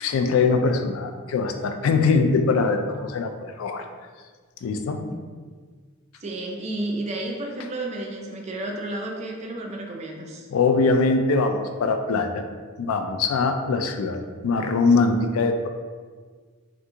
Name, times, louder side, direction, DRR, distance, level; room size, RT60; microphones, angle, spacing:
voice 1, 0.0-3.8 4.6-5.0 10.5-12.4 12.8-15.7, left 4 dB, 80° left, 6 dB, 0.3 m, -22 dB
voice 2, 6.2-10.5, right 1 dB, 30° right, 1 dB, 0.4 m, -31 dB
3.5 x 2.4 x 2.8 m, 1.6 s
head